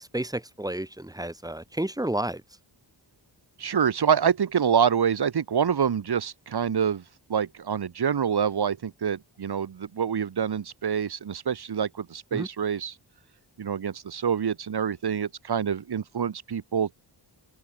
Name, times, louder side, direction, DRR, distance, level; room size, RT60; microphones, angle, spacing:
voice 1, 0.0-2.4 12.3-12.5, right 1 dB, 10° right, 1.0 m, -31 dB
voice 2, 3.6-7.0 7.3-12.9 13.6-16.9, right 7 dB, 60° right, 1.3 m, -26 dB
open air
wide cardioid pair, 115°, 44 cm